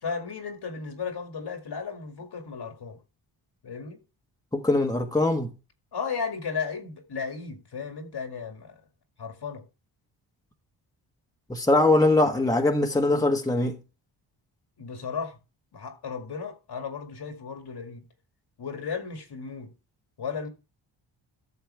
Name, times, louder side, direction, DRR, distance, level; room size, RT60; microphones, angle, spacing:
voice 1, 0.0-3.0 3.6-4.0 5.9-8.8 9.2-9.6 14.8-15.4 15.7-18.1 18.6-19.7 20.2-20.5, left 5 dB, 55° left, 2.1 m, -35 dB
voice 2, 4.5-5.5 11.5-13.8, left 2 dB, 5° left, 1.4 m, -22 dB
13.0 x 6.6 x 3.4 m
cardioid pair, 85°, 48 cm